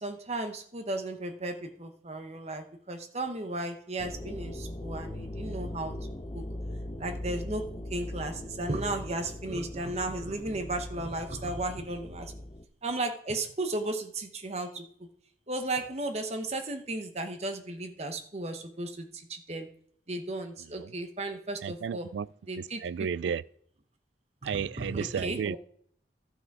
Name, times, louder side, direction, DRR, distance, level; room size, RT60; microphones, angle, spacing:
voice 1, 0.0-6.0 6.3-6.5 7.0-12.3 12.8-15.1 15.5-19.7 20.1-22.1 22.5-22.8 24.5-25.6, right 2 dB, 35° right, 1.0 m, -35 dB
sound 1, 4.0-12.6, left 1 dB, 25° left, 0.7 m, -40 dB
voice 2, 21.6-22.3 22.6-23.4 24.4-25.6, right 7 dB, 80° right, 0.3 m, -33 dB
12.0 x 5.9 x 4.8 m
head